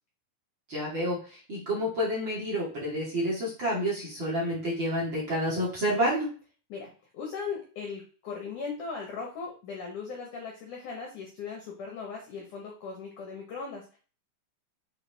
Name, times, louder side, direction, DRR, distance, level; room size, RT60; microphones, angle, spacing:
voice 1, 0.7-6.3, equal, 45° right, -6 dB, 1.5 m, -29 dB
voice 2, 6.7-14.0, left 5 dB, 80° left, 0 dB, 1.7 m, -38 dB
6.9 x 4.6 x 3.4 m, 0.39 s
omnidirectional pair, 5.4 m